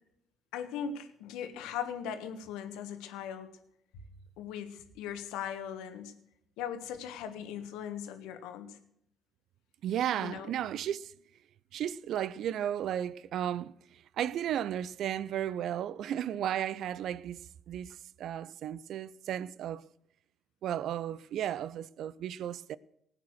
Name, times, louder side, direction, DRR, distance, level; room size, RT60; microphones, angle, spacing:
voice 1, 0.5-3.5 4.4-6.1 6.6-8.8 10.2-10.5, left 8 dB, 75° left, 1.5 m, -39 dB
voice 2, 9.8-11.1 11.7-13.8 14.2-17.4 17.7-19.9 20.6-22.8, right 10 dB, 65° right, 0.5 m, -34 dB
18.0 x 8.9 x 6.4 m
hypercardioid pair, 50°, 0 cm